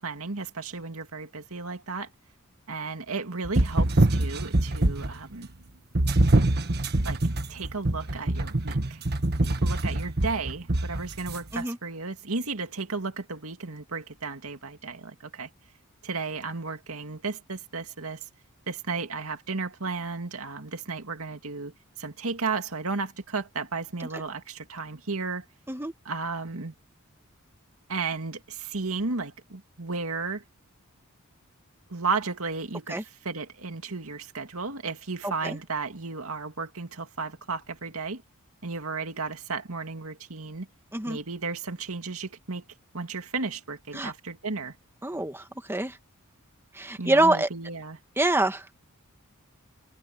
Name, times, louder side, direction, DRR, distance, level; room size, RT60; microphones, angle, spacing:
voice 1, 0.0-2.1 2.7-5.5 7.0-7.2 7.5-9.0 9.6-15.5 16.0-18.2 18.7-25.5 26.1-26.7 27.9-30.4 31.9-38.2 38.6-40.7 41.1-42.6 42.9-44.7 47.0-48.0, right 4 dB, 75° right, 2.3 m, -34 dB
sound 1, 3.4-5.2 5.9-11.4, right 2 dB, 50° right, 1.4 m, -24 dB
voice 2, 45.0-46.0 46.7-47.5 48.2-48.6, right 2 dB, 10° right, 1.6 m, -25 dB
head